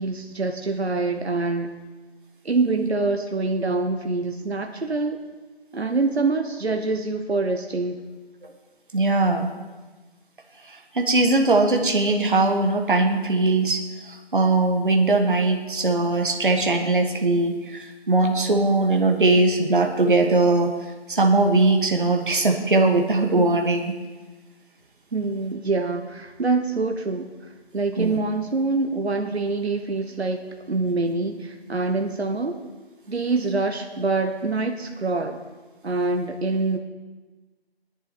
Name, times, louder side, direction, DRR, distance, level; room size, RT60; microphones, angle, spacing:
voice 1, 0.0-1.7 2.4-5.2 5.7-8.0 25.1-27.3 27.7-30.4 30.7-32.6 33.1-35.4 35.8-36.8, right 3 dB, 75° right, 5 dB, 1.3 m, -25 dB
voice 2, 8.9-9.5 10.9-13.8 14.1-20.7 21.1-23.9 28.0-28.2, right 2 dB, 50° right, 4 dB, 1.5 m, -20 dB
17.5 x 11.0 x 4.4 m, 1.3 s
figure-of-eight pair, 170°, 32 cm